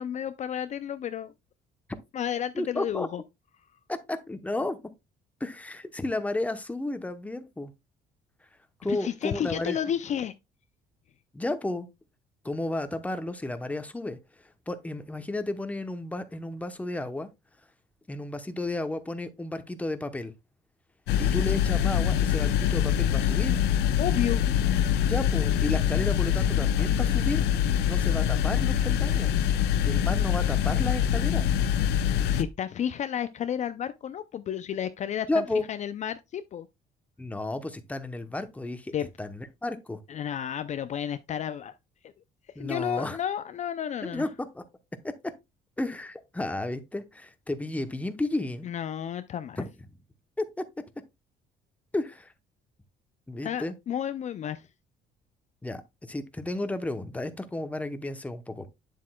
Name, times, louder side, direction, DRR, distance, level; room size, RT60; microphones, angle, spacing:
voice 1, 0.0-1.3 2.1-3.2 8.9-10.3 24.0-24.4 32.3-36.7 38.9-39.1 40.1-41.7 42.6-44.3 48.6-49.6 53.4-54.7, left 9 dB, 45° left, 0.5 m, -32 dB
voice 2, 2.5-3.1 3.9-4.8 5.4-7.7 8.8-9.8 11.3-11.9 12.4-14.2 14.7-17.3 18.1-20.3 21.2-23.6 25.0-27.5 27.9-29.4 29.8-31.5 35.3-35.6 37.2-38.9 39.2-40.0 42.5-43.2 44.0-44.6 45.0-45.1 45.8-48.7 49.6-49.7 50.4-50.6 51.9-52.3 53.3-53.7 55.6-58.7, left 2 dB, 10° left, 0.9 m, -32 dB
sound 1, 21.1-32.4, left 9 dB, 85° left, 0.7 m, -24 dB
8.3 x 7.4 x 2.3 m
cardioid pair, 110°, 17 cm